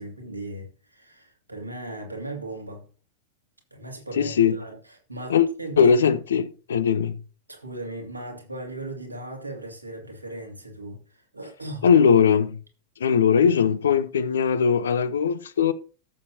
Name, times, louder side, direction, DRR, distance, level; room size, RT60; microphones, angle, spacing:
voice 1, 0.0-2.9 3.7-6.1 7.5-11.9, right 1 dB, 85° right, 2.4 m, -37 dB
voice 2, 4.2-4.5 5.3-5.5 5.8-7.2 11.8-12.6 13.0-15.7, left 7 dB, 65° left, 0.7 m, -20 dB
14.0 x 6.9 x 2.8 m
figure-of-eight pair, 90°, 0 cm